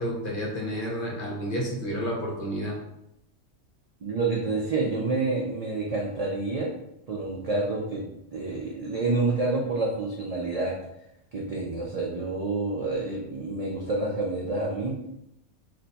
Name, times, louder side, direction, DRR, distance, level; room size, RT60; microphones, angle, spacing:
voice 1, 0.0-2.8, equal, 50° left, -3 dB, 0.9 m, -30 dB
voice 2, 4.0-6.7 7.1-8.0 8.3-10.7 11.3-15.1, right 3 dB, 75° right, -3 dB, 0.3 m, -28 dB
2.5 x 2.2 x 3.9 m, 0.82 s
omnidirectional pair, 1.3 m